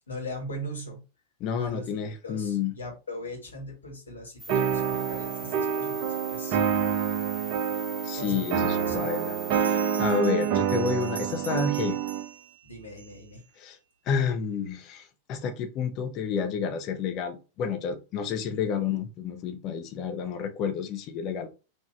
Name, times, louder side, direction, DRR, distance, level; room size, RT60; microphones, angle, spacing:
voice 1, 0.1-1.0 1.6-6.6 8.2-8.5 8.7-9.1 12.6-13.4, left 1 dB, 75° left, 1.6 m, -40 dB
voice 2, 1.4-2.7 8.0-9.3 9.7-12.0 13.6-13.8 14.1-21.5, left 6 dB, 40° left, 0.9 m, -30 dB
sound 1, 4.4-10.2, right 2 dB, 10° left, 0.5 m, -42 dB
sound 2, 4.5-12.3, right 8 dB, 45° right, 0.6 m, -27 dB
Bell, 9.5-13.4, right 6 dB, 75° right, 0.8 m, -44 dB
4.8 x 2.7 x 3.3 m
figure-of-eight pair, 90°, 0 cm